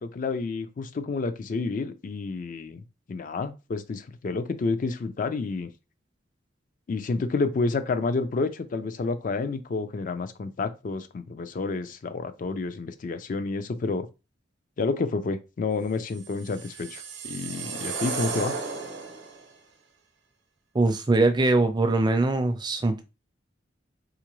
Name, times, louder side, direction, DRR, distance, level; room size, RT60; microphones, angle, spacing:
voice 1, 0.0-2.8 3.1-5.7 6.9-14.1 14.8-18.5, left 3 dB, 45° left, 0.4 m, -29 dB
sound 1, 16.2-19.4, right 5 dB, 85° right, 0.7 m, -34 dB
voice 2, 20.7-23.0, right 2 dB, 25° right, 0.4 m, -22 dB
3.6 x 2.5 x 3.0 m
head